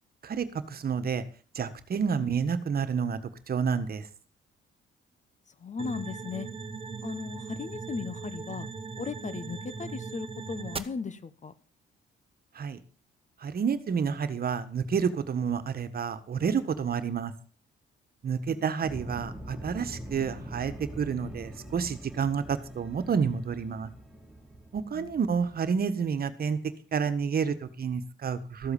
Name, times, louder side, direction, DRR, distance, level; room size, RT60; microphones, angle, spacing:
voice 1, 0.2-1.2 1.5-3.2 3.5-4.1 12.5-12.8 13.4-17.3 18.2-23.9 24.7-26.6 26.9-28.7, right 6 dB, 50° right, 1.6 m, -29 dB
voice 2, 5.6-6.5 7.0-8.7 9.0-11.5 18.5-18.7 24.9-25.2, left 5 dB, 35° left, 1.5 m, -37 dB
sound 1, 5.8-10.8, right 5 dB, 30° right, 1.3 m, -39 dB
sound 2, 18.8-25.6, right 1 dB, 5° right, 3.6 m, -43 dB
14.0 x 8.0 x 7.2 m
cardioid pair, 90°, 20 cm